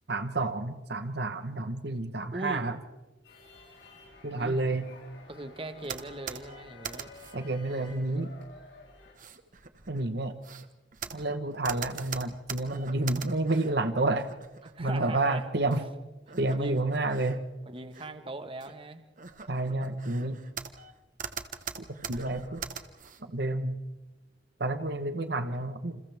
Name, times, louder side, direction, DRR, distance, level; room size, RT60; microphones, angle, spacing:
voice 1, 0.1-2.7 4.2-4.9 7.3-8.3 9.9-10.3 11.1-14.3 14.8-15.8 16.4-17.4 19.5-20.4 22.1-22.6 23.3-23.8 24.6-26.0, right 2 dB, 60° right, 9 dB, 1.2 m, -29 dB
voice 2, 2.3-2.6 4.4-4.6 5.3-7.1 14.6-15.4 15.7-15.9 16.3-16.8 17.7-19.0, right 2 dB, 30° right, 8 dB, 1.4 m, -40 dB
sound 1, 3.2-9.1, left 3 dB, 75° left, 7.2 m, -52 dB
sound 2, 5.8-7.4 7.8-8.4 9.1-13.8 14.2-14.7 15.7-15.8 16.3-17.4 17.8-18.1 18.6-18.7 19.2-20.9 21.2-23.2, right 6 dB, 45° right, 1.3 m, -42 dB
28.5 x 28.0 x 3.5 m, 1.1 s
head